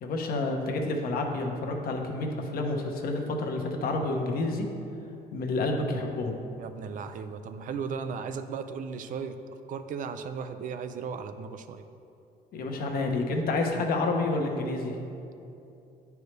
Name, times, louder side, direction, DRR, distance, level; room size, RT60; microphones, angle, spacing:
voice 1, 0.0-4.7 5.3-6.4 12.5-15.0, left 2 dB, 60° left, 2 dB, 0.9 m, -29 dB
voice 2, 6.6-9.4 9.7-11.8, right 6 dB, 50° right, 9 dB, 0.4 m, -36 dB
9.4 x 4.7 x 3.3 m, 2.7 s
cardioid pair, 110°, 17 cm